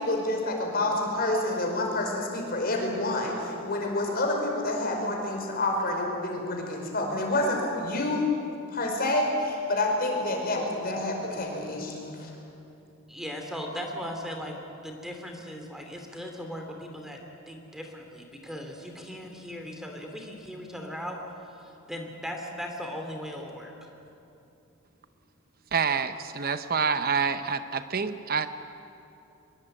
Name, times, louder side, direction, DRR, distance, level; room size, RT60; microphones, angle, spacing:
voice 1, 0.0-8.3 8.7-12.3, left 2 dB, 45° left, 1 dB, 5.2 m, -28 dB
voice 2, 13.1-17.2 17.5-23.9, equal, ahead, 2 dB, 2.7 m, -38 dB
voice 3, 25.7-28.5, right 5 dB, 45° right, 10 dB, 0.8 m, -27 dB
24.0 x 22.0 x 9.0 m, 2.8 s
head